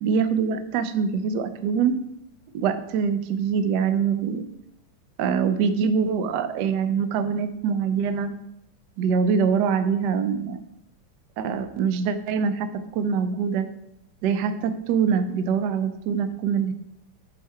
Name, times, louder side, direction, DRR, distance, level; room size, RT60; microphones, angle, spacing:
voice 1, 0.0-1.9 2.5-4.4 5.2-8.3 9.0-10.6 11.4-13.7 14.2-16.7, right 6 dB, 80° right, 10 dB, 0.9 m, -24 dB
5.8 x 5.5 x 4.3 m, 0.81 s
omnidirectional pair, 2.4 m